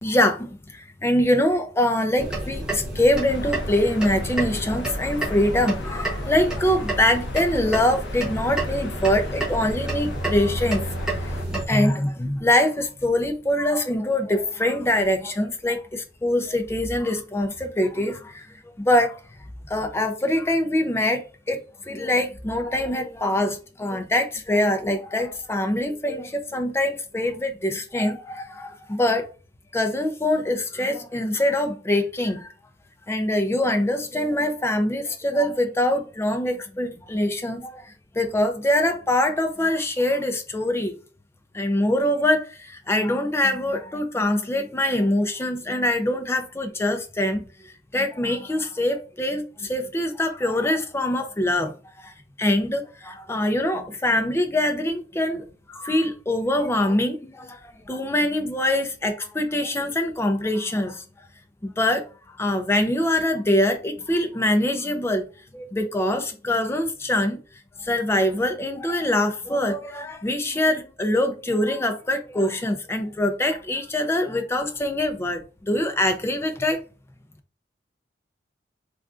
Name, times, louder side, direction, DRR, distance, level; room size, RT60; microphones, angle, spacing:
voice 1, 0.0-10.9 11.2-19.2 19.7-21.6 21.9-29.3 29.7-32.5 33.1-41.0 41.5-52.1 52.4-61.0 61.6-62.1 62.4-65.3 65.5-67.4 67.8-76.8, left 1 dB, 15° left, 0.4 m, -24 dB
sound 1, 2.2-11.7, right 1 dB, 5° right, 0.8 m, -30 dB
sound 2, 3.3-11.4, left 2 dB, 85° left, 0.4 m, -37 dB
3.5 x 2.4 x 2.4 m
head